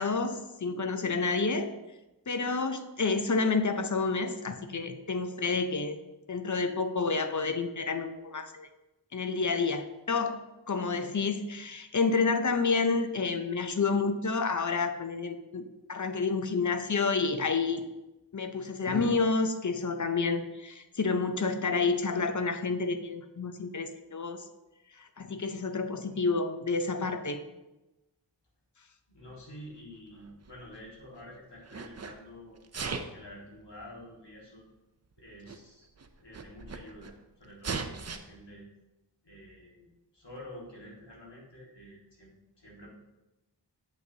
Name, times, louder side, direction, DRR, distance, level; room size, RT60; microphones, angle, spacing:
voice 1, 0.0-1.7 2.3-6.0 6.3-8.7 9.1-15.6 15.9-17.9 18.3-24.4 25.0-27.4, left 4 dB, 45° left, 8 dB, 0.6 m, -29 dB
voice 2, 29.1-32.6 33.1-34.6 35.2-35.9 36.2-38.7 39.2-42.9, left 1 dB, 70° left, -4 dB, 2.0 m, -49 dB
Sneeze, 30.1-31.2 31.6-32.1 32.6-33.2 34.2-34.3 35.2-35.3 35.5-35.6 35.9-37.1 37.6-38.2, right 4 dB, 35° right, 0.5 m, -38 dB
7.7 x 5.9 x 2.8 m, 1.0 s
wide cardioid pair, 60°, 43 cm